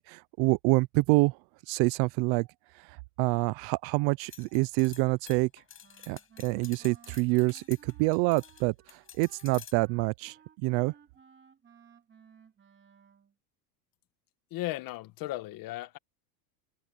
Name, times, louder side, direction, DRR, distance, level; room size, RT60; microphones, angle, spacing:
voice 1, 0.0-1.4 1.7-2.5 3.2-5.5 6.1-10.4 10.6-10.9, right 25 dB, 50° right, 0.7 m, -27 dB
sound 1, 4.3-8.6 8.9-9.7, left 8 dB, 25° left, 6.4 m, -50 dB
Wind instrument woodwind instrument, 5.8-13.3, right 7 dB, 25° right, 3.1 m, -59 dB
voice 2, 14.5-16.0, left 17 dB, 45° left, 1.7 m, -36 dB
supercardioid pair, 135°, 47 cm